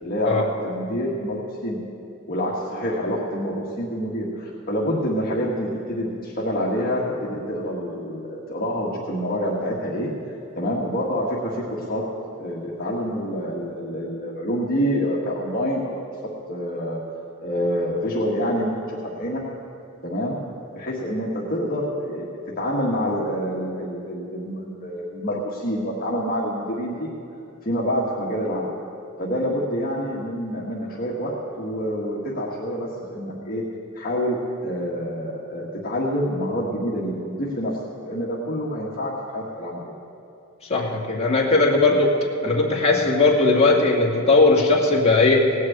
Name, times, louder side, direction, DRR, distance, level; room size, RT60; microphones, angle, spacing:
voice 1, 0.0-1.8 2.3-10.1 10.6-12.0 12.4-15.9 16.5-17.0 17.4-19.4 20.0-20.4 20.7-22.3 22.6-27.1 27.6-28.7 29.2-33.6 33.9-34.4 34.6-37.8 38.0-39.9, equal, 45° left, -5 dB, 1.6 m, -27 dB
voice 2, 40.6-42.2 42.4-45.5, left 3 dB, 30° left, -3 dB, 2.1 m, -18 dB
18.0 x 6.5 x 8.6 m, 2.6 s
head